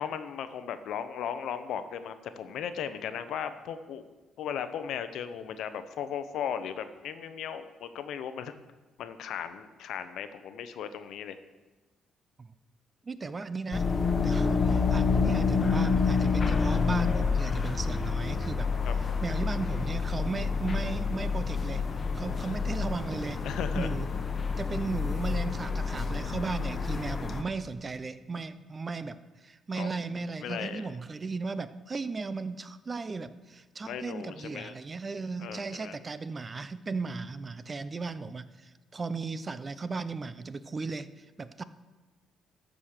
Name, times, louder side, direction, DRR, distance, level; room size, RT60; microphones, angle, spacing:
voice 1, 0.0-4.0 4.4-8.5 9.0-11.4 18.8-18.9 23.4-23.9 29.7-30.0 30.4-30.9 33.8-34.7 35.4-35.9, left 8 dB, 80° left, 11 dB, 0.7 m, -36 dB
voice 2, 13.0-13.9 14.2-18.7 19.2-21.8 22.1-23.5 23.7-24.2 24.6-41.6, right 4 dB, 30° right, 14 dB, 0.5 m, -36 dB
sound 1, 13.7-27.4, left 5 dB, 40° left, 1.0 m, -28 dB
13.0 x 5.1 x 6.4 m, 1.2 s
cardioid pair, 90°, 0 cm